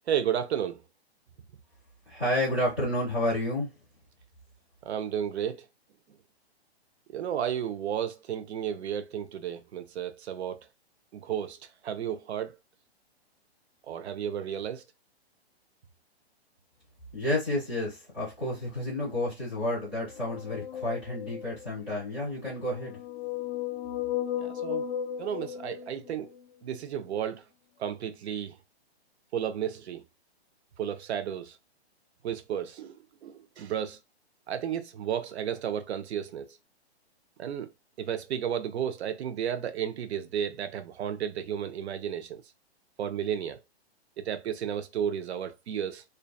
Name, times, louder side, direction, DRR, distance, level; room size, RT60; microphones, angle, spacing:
voice 1, 0.1-0.8 4.8-5.7 7.1-10.7 11.1-12.6 13.9-14.8 24.4-24.9 25.2-26.3 26.6-27.4 27.8-28.6 29.3-30.0 30.8-31.6 32.2-34.0 34.5-36.6 37.4-37.7 38.0-42.4 43.0-43.6 44.2-46.0, right 9 dB, 75° right, 0.5 m, -33 dB
voice 2, 2.1-3.7 17.1-23.0, left 1 dB, 5° right, 0.6 m, -30 dB
sound 1, 20.0-21.7 22.5-26.4, left 10 dB, 65° left, 0.4 m, -35 dB
2.6 x 2.2 x 2.2 m
hypercardioid pair, 170°, 33 cm